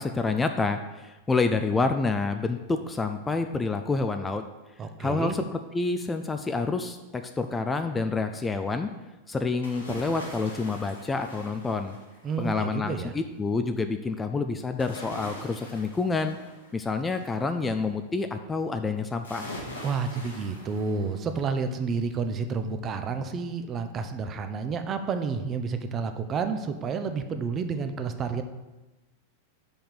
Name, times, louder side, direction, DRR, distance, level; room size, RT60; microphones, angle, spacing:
voice 1, 0.0-4.4 5.0-8.9 9.3-12.0 12.4-16.4 16.7-19.6, left 3 dB, 15° left, 7 dB, 0.4 m, -28 dB
voice 2, 4.8-5.4 12.2-13.1 19.8-28.4, right 5 dB, 30° right, 8 dB, 0.7 m, -30 dB
sound 1, 9.6-12.4 14.8-17.4 19.2-21.5 21.9-22.0, left 1 dB, 75° left, 1.9 m, -43 dB
5.8 x 5.2 x 6.6 m, 1.1 s
figure-of-eight pair, 90°, 0 cm